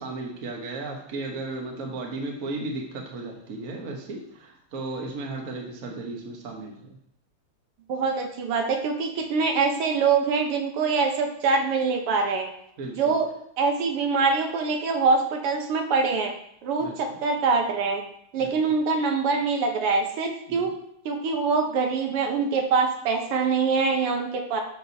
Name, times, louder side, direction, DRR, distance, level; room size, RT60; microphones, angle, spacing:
voice 1, 0.0-7.0 12.8-13.2 16.8-17.0 18.4-18.5 20.5-20.7, right 2 dB, 45° right, 1 dB, 1.3 m, -35 dB
voice 2, 7.9-12.5 12.9-13.3 13.6-16.3 16.6-18.0 18.3-20.7 21.1-24.6, right 4 dB, 85° right, 3 dB, 1.9 m, -24 dB
8.3 x 6.4 x 2.7 m, 0.72 s
omnidirectional pair, 2.4 m